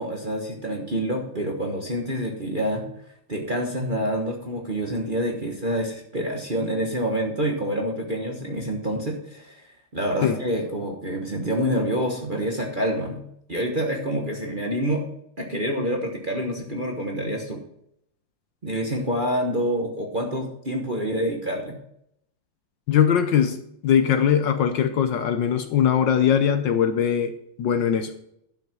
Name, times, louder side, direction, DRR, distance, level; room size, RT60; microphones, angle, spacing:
voice 1, 0.0-2.9 3.3-9.7 9.9-13.2 13.5-15.0 15.4-17.6 18.6-21.8, equal, 30° right, 1 dB, 1.1 m, -27 dB
voice 2, 22.9-27.3 27.6-28.1, left 8 dB, 65° left, 9 dB, 1.3 m, -21 dB
12.0 x 5.9 x 6.0 m, 0.75 s
omnidirectional pair, 2.4 m